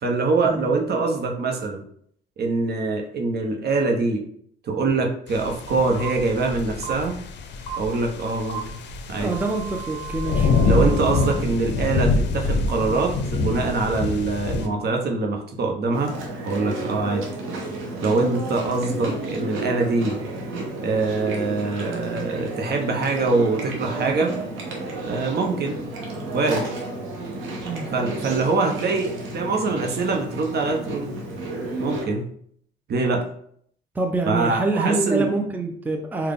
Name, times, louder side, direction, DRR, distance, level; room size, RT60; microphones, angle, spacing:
voice 1, 0.0-1.8 2.4-4.2 4.6-7.2 7.8-8.6 9.1-9.3 10.6-16.1 16.4-17.3 18.0-20.1 20.8-24.3 25.0-25.8 26.3-26.7 27.9-31.2 31.8-32.2 32.9-33.3 34.3-35.3, right 3 dB, 55° right, 2 dB, 0.8 m, -24 dB
sound 1, 5.3-14.7, left 3 dB, 65° left, 0.5 m, -25 dB
sound 2, 6.0-6.1 6.8-6.9 7.7-7.8 8.5-8.6 9.2-11.4, right 10 dB, 30° left, 1.1 m, -36 dB
voice 2, 9.2-10.5 27.6-27.9 33.9-36.3, right 2 dB, 10° right, 3 dB, 0.5 m, -26 dB
Chewing mastication, 15.9-32.0, right 2 dB, 85° right, 0.9 m, -32 dB
3.9 x 2.2 x 3.5 m, 0.64 s
cardioid pair, 90°, 20 cm